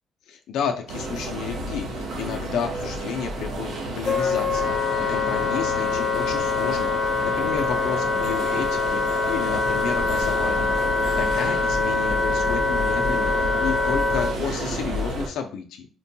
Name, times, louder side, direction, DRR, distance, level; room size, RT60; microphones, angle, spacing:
voice 1, 0.3-15.9, left 7 dB, 85° left, 3 dB, 0.4 m, -32 dB
sound 1, 0.9-15.3, right 1 dB, 80° right, 0.9 m, -31 dB
Wind instrument woodwind instrument, 4.0-14.3, left 4 dB, 30° left, 0.8 m, -24 dB
4.4 x 2.2 x 2.7 m, 0.38 s
cardioid pair, 90°, 0 cm